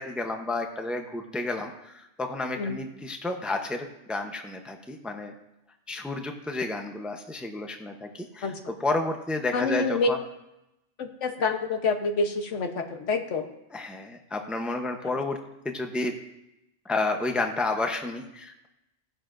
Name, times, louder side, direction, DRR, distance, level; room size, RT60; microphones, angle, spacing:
voice 1, 0.0-5.3 5.9-8.5 8.8-10.2 13.7-15.4 15.6-16.1 16.8-18.7, left 2 dB, ahead, 4 dB, 0.6 m, -31 dB
voice 2, 9.5-10.1 11.0-13.4, left 3 dB, 80° left, 6 dB, 1.3 m, -27 dB
17.0 x 11.0 x 2.6 m, 0.90 s
omnidirectional pair, 1.2 m